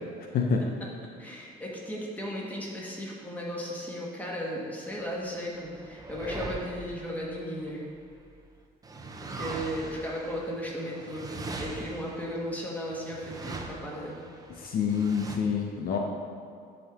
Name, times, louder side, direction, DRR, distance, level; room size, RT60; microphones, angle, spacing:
voice 1, 0.3-0.6 14.6-16.0, left 6 dB, 60° left, 1 dB, 0.7 m, -27 dB
voice 2, 1.2-7.9 9.2-14.2, equal, 10° left, -4 dB, 1.5 m, -35 dB
sound 1, 5.2-8.3 8.8-15.4, right 3 dB, 20° right, 0.6 m, -41 dB
10.5 x 3.7 x 3.6 m, 2.3 s
cardioid pair, 110°, 17 cm